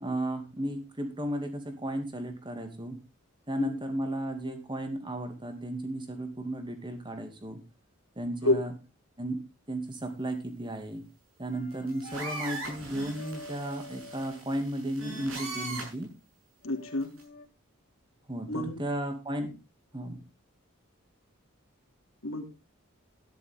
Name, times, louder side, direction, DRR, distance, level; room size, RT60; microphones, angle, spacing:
voice 1, 0.0-3.0 3.5-7.6 8.2-8.7 9.2-9.4 9.7-11.0 11.4-16.1 18.3-18.5 18.8-19.5 19.9-20.2, right 1 dB, 20° right, 6 dB, 2.4 m, -34 dB
sound 1, 11.5-14.4 16.6-17.4, left 1 dB, 35° left, 3.1 m, -48 dB
sound 2, 11.7-16.0 17.0-17.2, right 2 dB, 75° right, 7.3 m, -40 dB
voice 2, 16.6-17.1 18.5-18.8 22.2-22.4, left 1 dB, 80° left, 4 dB, 3.0 m, -28 dB
13.0 x 11.0 x 3.7 m, 0.27 s
head